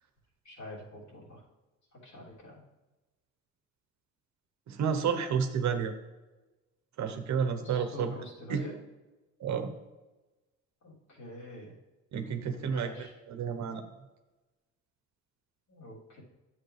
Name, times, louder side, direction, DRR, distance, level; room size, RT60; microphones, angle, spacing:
voice 1, 0.4-1.4 1.9-2.6 7.5-8.7 10.8-11.7 12.3-13.1 15.7-16.2, left 1 dB, 65° left, -6 dB, 3.4 m, -46 dB
voice 2, 4.7-5.9 7.0-8.1 8.5-8.6 9.4-9.7 12.1-13.8, right 6 dB, 65° right, 8 dB, 1.0 m, -31 dB
10.5 x 7.4 x 3.3 m, 1.1 s
cardioid pair, 90°, 30 cm